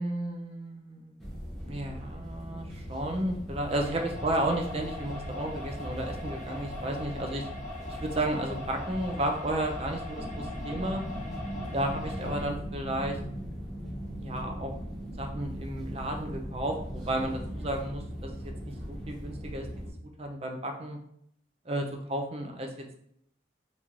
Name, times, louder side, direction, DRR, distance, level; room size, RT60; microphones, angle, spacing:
voice 1, 0.0-7.5 7.9-11.0 11.7-13.2 14.2-14.7 15.2-19.7 20.2-21.0 21.7-23.1, right 1 dB, 30° right, 3 dB, 0.5 m, -33 dB
sound 1, 1.2-19.9, equal, ahead, 0.8 m, -39 dB
sound 2, 3.7-12.5, left 2 dB, 40° left, 1.3 m, -42 dB
3.0 x 2.8 x 3.6 m, 0.70 s
head